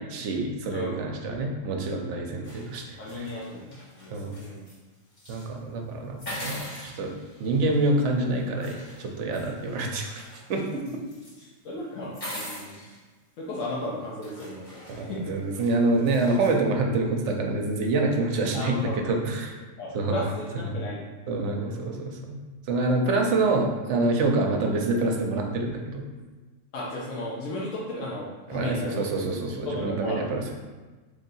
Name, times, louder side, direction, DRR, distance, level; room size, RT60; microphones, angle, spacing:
voice 1, 0.1-3.3 4.1-4.4 5.3-7.1 7.4-10.2 10.5-10.8 14.9-18.8 19.0-19.5 19.9-20.2 20.7-20.8 21.3-22.4 22.7-26.1 28.5-30.5, right 2 dB, 70° right, 2 dB, 0.9 m, -26 dB
voice 2, 0.7-1.1 2.3-2.4 3.0-4.7 11.6-12.8 13.4-15.3 18.5-19.1 19.8-21.0 21.3-21.8 26.7-29.0 29.7-30.3, left 1 dB, 80° left, -6 dB, 1.1 m, -35 dB
sound 1, 2.4-4.8 5.1-5.5 6.2-7.9 8.6-11.4 12.0-13.0 13.7-13.8 14.2-16.6, equal, 35° left, 1.6 m, -42 dB
3.4 x 2.7 x 3.9 m, 1.3 s
omnidirectional pair, 1.4 m